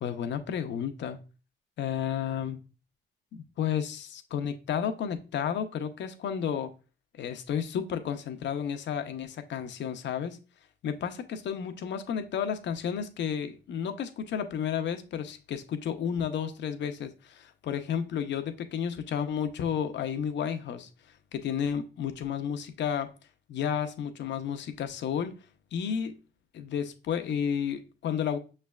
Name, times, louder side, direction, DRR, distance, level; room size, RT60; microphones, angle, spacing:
voice 1, 0.0-1.2 1.8-2.6 3.3-6.7 7.1-10.4 10.8-20.9 21.3-23.1 23.5-25.3 25.7-26.1 26.5-28.4, left 8 dB, 65° left, 0.6 m, -32 dB
5.9 x 3.2 x 2.3 m
cardioid pair, 90°, 20 cm